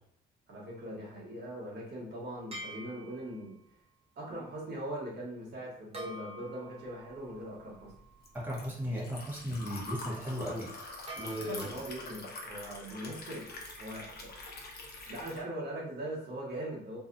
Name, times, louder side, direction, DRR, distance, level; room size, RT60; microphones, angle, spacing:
voice 1, 0.5-3.6 4.2-7.9 11.2-13.5 13.8-14.3 15.1-17.0, right 1 dB, 55° right, -4 dB, 1.0 m, -41 dB
sound 1, 2.5-3.5 5.9-9.1 11.1-12.0, equal, 30° right, 1.1 m, -48 dB
Liquid, 7.1-15.4, left 2 dB, 50° left, 0.7 m, -45 dB
voice 2, 8.3-10.7 11.1-11.8, equal, 10° right, -5 dB, 0.9 m, -36 dB
2.7 x 2.3 x 2.5 m, 0.67 s
cardioid pair, 90°, 20 cm